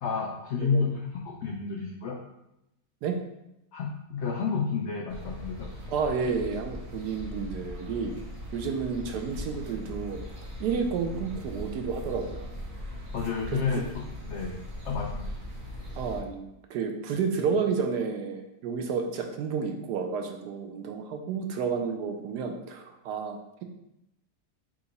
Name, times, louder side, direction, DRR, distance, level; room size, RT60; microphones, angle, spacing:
voice 1, 0.0-2.2 3.7-5.7 13.1-13.8 14.3-14.5 14.8-15.2, left 5 dB, 80° left, 0 dB, 0.6 m, -30 dB
sound 1, 5.1-16.2, left 1 dB, 50° right, 1.2 m, -39 dB
voice 2, 5.9-8.1 8.5-10.2 10.6-12.5 13.5-13.8 16.0-23.6, right 5 dB, 90° right, 4 dB, 1.2 m, -31 dB
3.7 x 2.9 x 3.9 m, 0.86 s
omnidirectional pair, 1.7 m